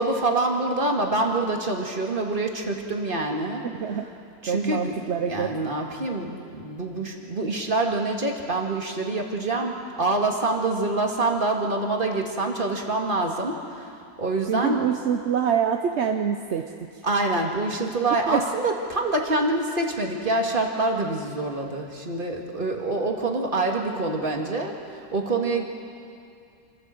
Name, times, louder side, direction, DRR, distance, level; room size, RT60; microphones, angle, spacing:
voice 1, 0.0-3.6 4.4-5.0 5.2-14.9 17.0-25.6, right 2 dB, 30° right, 1 dB, 2.2 m, -26 dB
voice 2, 3.6-4.0 4.4-5.5 14.5-16.7 18.3-18.4, right 7 dB, 55° right, 5 dB, 0.9 m, -25 dB
27.0 x 15.0 x 7.7 m, 2.5 s
omnidirectional pair, 1.7 m